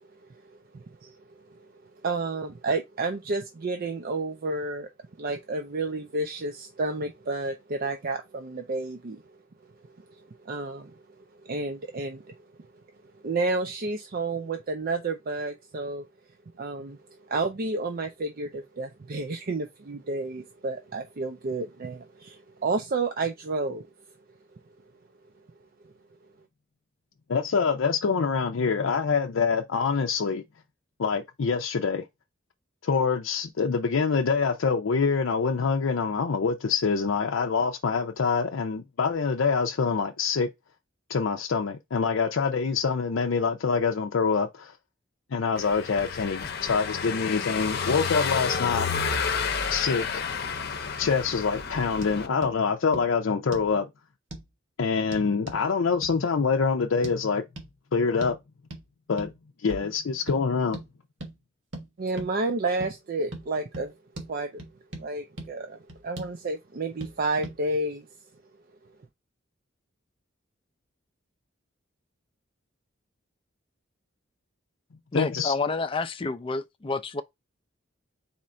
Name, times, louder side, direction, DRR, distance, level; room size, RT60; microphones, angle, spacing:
voice 1, 0.7-1.2 2.0-4.9 5.2-9.2 10.4-11.0 11.4-12.3 13.2-16.0 16.6-17.0 17.3-23.9 62.0-63.9 64.3-64.6 65.0-65.8 66.0-68.1, right 3 dB, 50° right, 0.5 m, -30 dB
voice 2, 27.3-30.4 31.0-32.0 32.8-40.5 41.1-44.7 45.3-48.9 49.7-50.3 51.0-53.9 54.8-57.4 57.9-58.4 59.1-59.3 59.6-60.8 75.1-75.5, left 5 dB, 85° left, 0.5 m, -25 dB
Car passing by / Engine, 45.6-52.3, left 6 dB, 55° left, 0.7 m, -30 dB
sound 1, 52.0-52.1 52.4-52.5 52.9-53.1 53.5-53.7 54.3-54.5 55.1-55.6 56.0-56.2 57.0-57.2 57.6-57.7 58.2-58.4 58.7-58.8 59.2-59.4 59.7-59.9 60.3-60.4 60.7-60.9 61.2-61.3 61.7-61.9 62.2-62.3 62.8-62.9 63.3-63.5 63.7-63.9 64.2-64.3 64.6-65.1 65.4-65.5 65.9-66.3 67.0-67.1 67.4-67.6, right 1 dB, 70° right, 1.4 m, -39 dB
voice 3, 75.1-77.2, left 3 dB, 25° left, 0.4 m, -29 dB
4.3 x 2.5 x 4.2 m
head